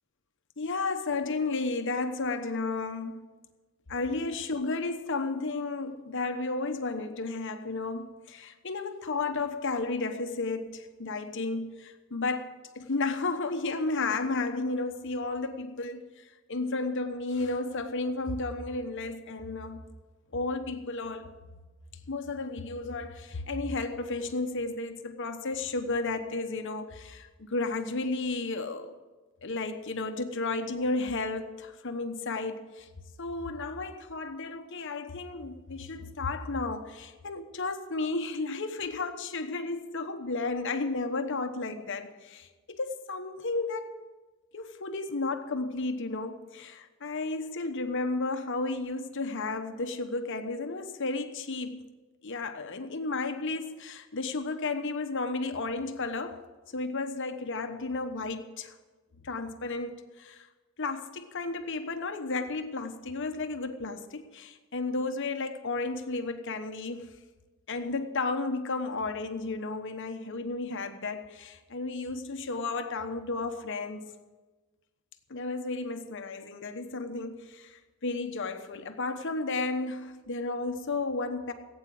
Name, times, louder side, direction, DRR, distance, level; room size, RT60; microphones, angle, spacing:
voice 1, 0.6-3.2 3.9-19.8 20.3-21.3 22.1-28.9 29.4-32.9 33.2-44.0 44.5-51.9 52.2-56.4 56.7-58.7 59.2-60.5 60.8-67.1 67.7-74.1 75.3-81.5, left 3 dB, 60° left, 7 dB, 1.1 m, -33 dB
16.0 x 8.8 x 7.7 m, 1.3 s
head